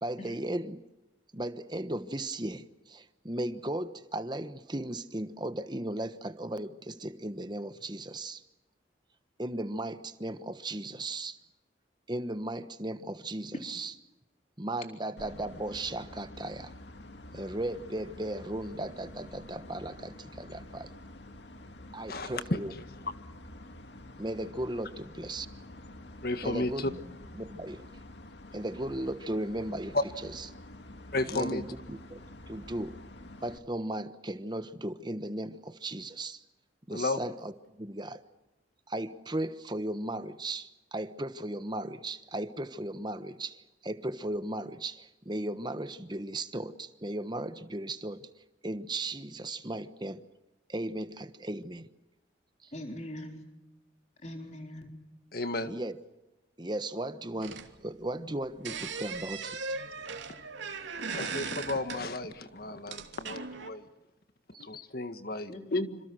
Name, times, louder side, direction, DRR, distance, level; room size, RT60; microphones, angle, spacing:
voice 1, 0.0-0.8 1.3-8.4 9.4-11.4 12.1-13.9 14.6-16.7 17.3-20.9 21.9-22.7 24.2-25.5 26.4-26.9 27.4-27.9 28.5-30.0 30.2-30.5 31.3-32.2 32.5-33.0 33.4-36.4 36.9-37.5 37.8-38.2 38.9-48.3 48.6-50.2 50.7-51.9 52.6-52.7 55.6-56.0 56.6-59.6 64.5-64.7, right 1 dB, 25° right, 11 dB, 1.1 m, -36 dB
sound 1, 15.2-33.6, left 1 dB, 70° left, 2.1 m, -48 dB
voice 2, 22.1-22.6 26.2-26.9 29.9-30.0 31.1-31.6 36.9-37.2 55.3-55.7 60.1-60.2 61.0-63.9 64.6-66.0, left 2 dB, 55° left, 9 dB, 1.8 m, -33 dB
voice 3, 52.7-53.4 54.2-55.0 65.5-65.9, left 1 dB, 40° left, 3 dB, 4.1 m, -42 dB
sound 2, 57.4-58.3 58.6-62.4 62.9-63.7, right 4 dB, 85° right, 2.8 m, -38 dB
27.5 x 26.5 x 6.3 m, 1.0 s
head